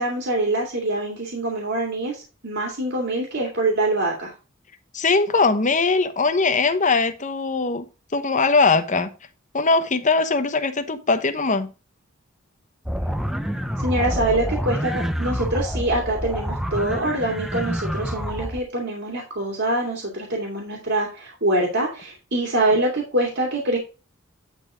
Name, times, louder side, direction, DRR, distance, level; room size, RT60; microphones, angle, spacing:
voice 1, 0.0-4.3 13.8-23.8, right 1 dB, 60° right, 2.5 m, -24 dB
voice 2, 4.9-7.9 8.1-9.1 9.5-11.7, left 4 dB, 40° left, 1.0 m, -20 dB
sound 1, 12.9-18.6, equal, ahead, 0.7 m, -27 dB
10.5 x 4.2 x 5.0 m
head